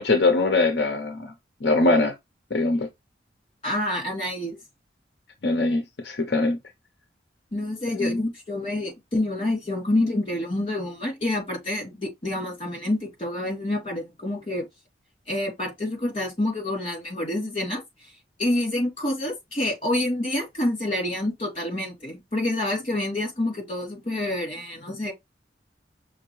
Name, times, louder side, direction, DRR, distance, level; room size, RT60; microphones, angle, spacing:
voice 1, 0.0-1.3 1.6-2.1 2.5-2.9 5.4-6.6 8.0-8.3, left 2 dB, 65° left, 0.8 m, -22 dB
voice 2, 3.6-4.6 7.5-14.6 15.3-17.8 18.4-25.1, left 1 dB, 30° left, 3.0 m, -27 dB
5.7 x 2.6 x 3.2 m
head